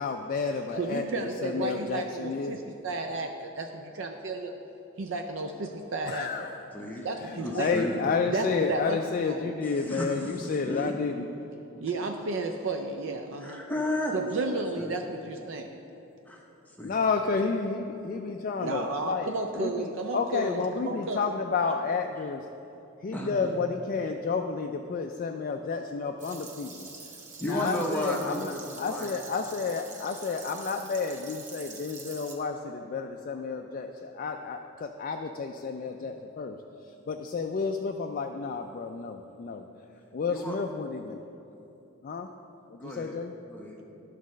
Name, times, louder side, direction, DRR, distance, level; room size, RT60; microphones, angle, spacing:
voice 1, 0.0-2.6 6.1-6.6 7.0-11.3 16.8-22.4 23.0-26.9 27.4-36.6 37.1-39.6 40.1-41.2 42.0-42.3 42.7-43.3, left 4 dB, 40° left, 4 dB, 0.3 m, -31 dB
voice 2, 0.7-4.6 5.0-6.3 7.0-7.8 8.3-9.0 9.3-9.5 11.8-13.6 14.1-15.7 18.6-21.2, right 3 dB, 60° right, 4 dB, 0.4 m, -33 dB
voice 3, 6.7-7.1 7.4-8.0 9.8-10.9 13.4-14.1 14.7-14.9 16.3-16.4 16.7-17.0 20.6-20.7 23.1-23.3 27.4-29.1 40.3-40.6 42.8-43.1 43.5-43.9, left 1 dB, 10° left, -1 dB, 0.7 m, -33 dB
sound 1, 26.2-32.3, right 4 dB, 35° right, 0.9 m, -45 dB
11.5 x 4.1 x 6.3 m, 2.9 s
head